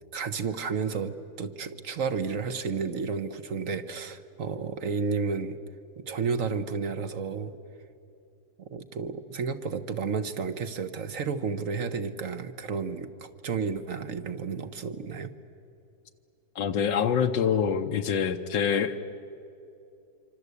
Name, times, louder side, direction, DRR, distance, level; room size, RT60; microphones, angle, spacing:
voice 1, 0.1-5.6 6.0-7.5 8.6-15.3, right 5 dB, 50° right, 10 dB, 1.3 m, -32 dB
voice 2, 16.5-19.0, left 7 dB, 80° left, 5 dB, 1.6 m, -25 dB
26.0 x 25.5 x 8.3 m, 2.6 s
omnidirectional pair, 2.0 m